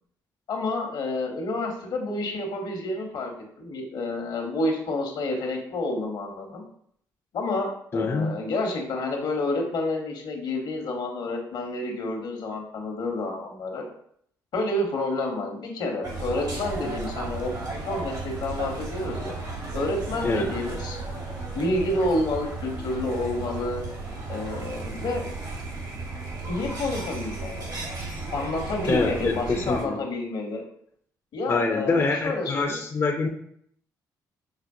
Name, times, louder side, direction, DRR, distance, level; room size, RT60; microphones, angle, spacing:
voice 1, 0.5-3.3 3.6-6.6 7.3-13.8 14.5-17.5 17.9-19.4 19.7-21.0 21.5-23.8 24.3-25.2 26.5-27.7 28.3-30.6 31.3-32.8, left 2 dB, 70° left, 2 dB, 1.0 m, -29 dB
voice 2, 7.9-8.3 20.2-20.5 28.9-30.0 31.5-33.3, left 3 dB, 30° left, 2 dB, 0.5 m, -25 dB
sound 1, 16.0-29.8, right 3 dB, 50° right, 1.0 m, -34 dB
5.7 x 2.1 x 2.6 m, 0.66 s
supercardioid pair, 65°, 8 cm